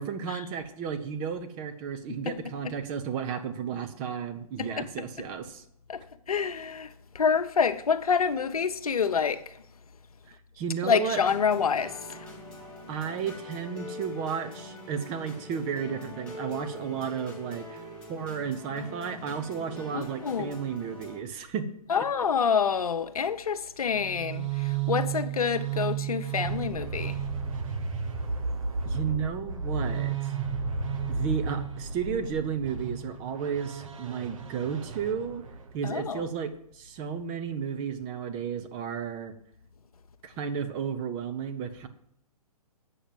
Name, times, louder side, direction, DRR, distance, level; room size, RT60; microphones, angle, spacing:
voice 1, 0.0-5.6 10.3-11.2 12.9-17.8 18.1-21.7 21.9-22.0 28.8-30.3 31.1-35.4 35.7-39.3 40.2-41.9, right 7 dB, 25° right, 0.9 m, -33 dB
voice 2, 4.6-5.3 5.9-9.6 10.8-12.2 19.9-20.6 21.9-27.2 35.8-36.3, left 6 dB, 70° left, 0.8 m, -28 dB
sound 1, 11.1-21.2, left 1 dB, 5° left, 1.9 m, -43 dB
sound 2, 23.9-35.7, right 6 dB, 55° right, 1.2 m, -33 dB
8.3 x 6.0 x 7.5 m
figure-of-eight pair, 130°, 20 cm